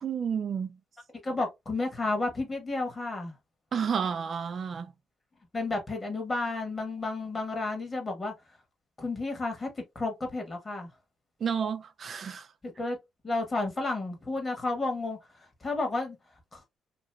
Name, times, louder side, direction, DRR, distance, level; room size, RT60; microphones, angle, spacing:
voice 1, 0.0-0.8 3.7-4.9 11.4-12.5, right 7 dB, 50° right, 0.4 m, -31 dB
voice 2, 1.2-3.3 5.5-8.3 9.0-10.9 12.6-13.0 13.2-15.2 15.6-16.2 16.5-16.6, left 2 dB, 30° left, 1.3 m, -31 dB
2.9 x 2.6 x 2.2 m
cardioid pair, 90°, 0 cm